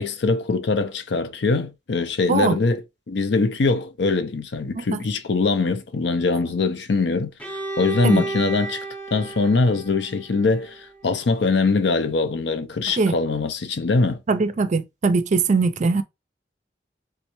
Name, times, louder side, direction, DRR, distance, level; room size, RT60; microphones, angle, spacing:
voice 1, 0.0-2.8 3.1-8.8 9.1-14.2, left 3 dB, 65° left, 0.5 m, -22 dB
Bowed string instrument, 7.4-11.2, right 3 dB, 5° left, 0.6 m, -33 dB
voice 2, 14.3-16.0, right 4 dB, 40° right, 0.4 m, -21 dB
3.4 x 3.1 x 3.0 m
head